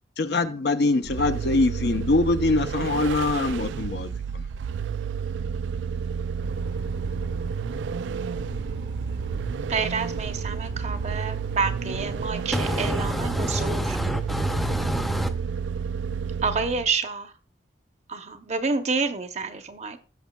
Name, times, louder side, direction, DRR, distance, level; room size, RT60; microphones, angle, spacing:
voice 1, 0.2-4.5, left 3 dB, 65° left, 0.7 m, -23 dB
Vehicle, 1.0-17.0, right 6 dB, 85° right, 0.3 m, -31 dB
sound 1, 6.4-12.3, right 1 dB, 70° right, 1.0 m, -38 dB
voice 2, 9.7-14.0 16.4-17.3 18.1-20.0, right 4 dB, 40° right, 0.7 m, -28 dB
voice 3, 12.5-15.3, equal, ahead, 0.6 m, -27 dB
17.0 x 6.2 x 2.3 m
head